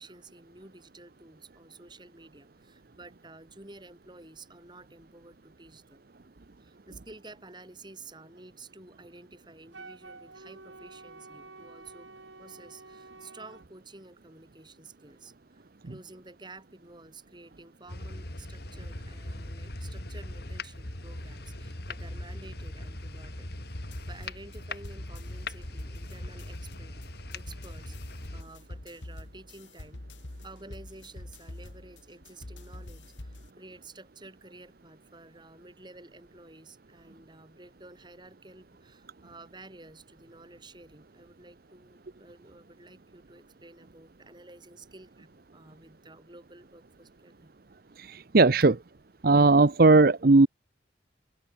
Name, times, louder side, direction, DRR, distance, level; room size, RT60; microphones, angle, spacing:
voice 1, 0.0-6.0 6.6-12.1 12.4-23.5 24.1-27.0 27.3-30.0 30.4-47.5, right 2 dB, 25° right, 5.2 m, -51 dB
Wind instrument woodwind instrument, 9.7-13.7, right 3 dB, 85° right, 6.0 m, -49 dB
sound 1, 17.9-28.4, left 2 dB, 60° left, 3.2 m, -40 dB
sound 2, 23.7-33.5, left 1 dB, 85° left, 2.0 m, -45 dB
voice 2, 48.0-48.7 49.2-50.5, right 3 dB, 55° right, 0.7 m, -18 dB
open air
head